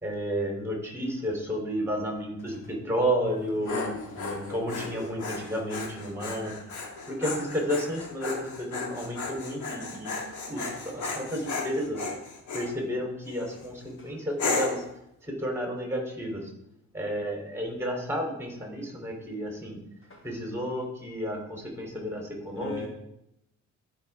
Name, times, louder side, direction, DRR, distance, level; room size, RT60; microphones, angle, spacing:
voice 1, 0.0-3.8 4.1-6.5 7.1-10.1 10.4-12.0 12.5-14.8 15.2-16.5 16.9-19.8 20.2-22.8, equal, 10° right, 0 dB, 3.8 m, -32 dB
Dog, 3.3-12.7 13.3-13.7 14.4-14.9, left 3 dB, 75° left, 2.0 m, -35 dB
voice 2, 3.7-4.9 14.0-14.2 20.1-20.2 22.6-22.9, left 3 dB, 45° left, 1 dB, 1.8 m, -38 dB
12.5 x 5.8 x 3.7 m, 0.79 s
cardioid pair, 90°, 30 cm